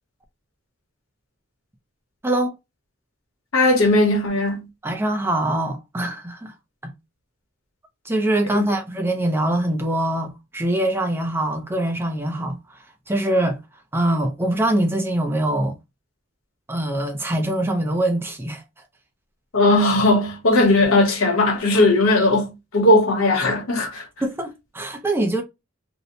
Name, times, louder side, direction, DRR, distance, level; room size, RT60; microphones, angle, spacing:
voice 1, 2.2-2.6 4.8-6.5 6.8-6.9 8.1-12.8 13.1-13.6 13.9-15.8 16.7-18.6 24.2-25.4, right 1 dB, 10° right, 0.5 m, -23 dB
voice 2, 3.5-4.7 8.5-8.6 19.5-24.1, left 2 dB, 85° left, 1.0 m, -18 dB
2.7 x 2.1 x 2.7 m
head